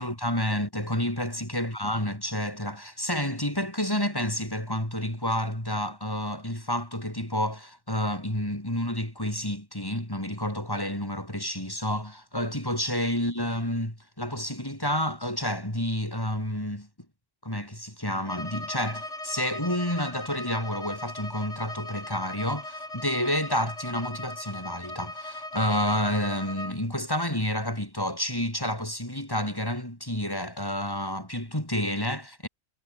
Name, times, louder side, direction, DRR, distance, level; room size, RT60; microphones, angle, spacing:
voice 1, 0.0-16.9 17.4-32.5, left 1 dB, 15° left, 5.8 m, -29 dB
Bowed string instrument, 18.2-26.8, left 1 dB, 65° left, 7.7 m, -39 dB
omnidirectional pair, 1.3 m